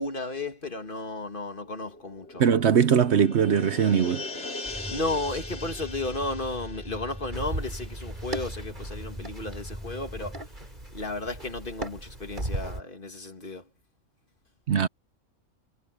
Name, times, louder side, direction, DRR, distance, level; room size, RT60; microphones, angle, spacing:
voice 1, 0.0-2.4 4.9-10.4 10.9-13.6, left 2 dB, 40° left, 2.1 m, -33 dB
sound 1, 1.6-8.6 8.9-9.0, left 2 dB, 60° left, 2.9 m, -41 dB
voice 2, 2.4-4.2 14.7-14.9, right 7 dB, 60° right, 1.0 m, -21 dB
sound 2, 4.6-10.4, equal, 5° right, 6.3 m, -40 dB
sound 3, 7.3-12.8, right 1 dB, 35° right, 4.7 m, -37 dB
omnidirectional pair, 1.3 m